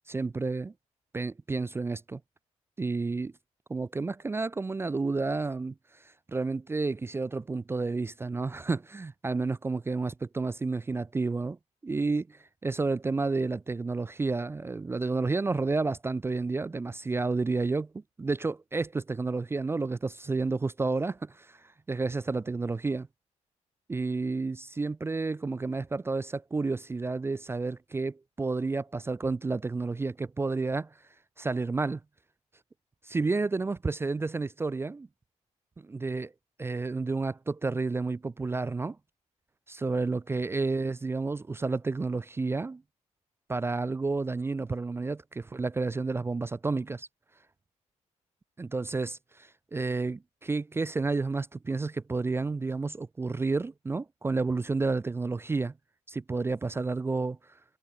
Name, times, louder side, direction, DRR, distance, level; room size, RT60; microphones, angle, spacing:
voice 1, 0.1-0.7 1.1-2.2 2.8-3.3 3.7-5.7 6.3-11.6 11.8-17.9 18.2-21.6 21.9-23.1 23.9-30.9 31.4-32.0 33.1-35.1 35.8-36.3 36.6-39.0 39.7-42.8 43.5-47.1 48.6-55.7 56.1-57.4, right 3 dB, 20° right, 0.4 m, -30 dB
cardioid pair, 90°, 13 cm